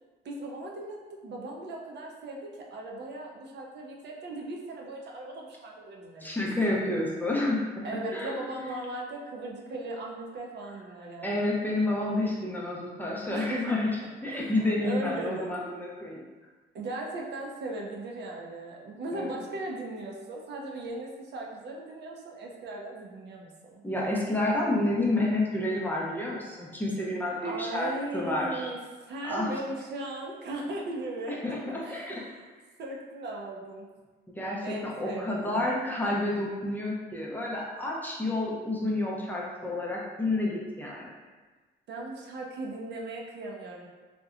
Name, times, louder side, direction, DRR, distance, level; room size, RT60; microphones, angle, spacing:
voice 1, 0.2-6.3 7.8-11.4 13.3-13.7 14.3-15.5 16.7-23.8 27.4-28.8 29.1-32.5 32.8-33.9 34.6-35.7 41.9-43.9, right 2 dB, 60° right, -1 dB, 0.5 m, -38 dB
voice 2, 6.2-7.8 8.1-8.7 11.2-13.9 14.2-16.2 19.1-19.3 23.8-27.9 28.1-28.7 29.2-29.5 31.3-32.2 34.4-41.1, left 2 dB, 10° left, -4 dB, 0.5 m, -29 dB
2.7 x 2.1 x 2.4 m, 1.3 s
cardioid pair, 90°, 20 cm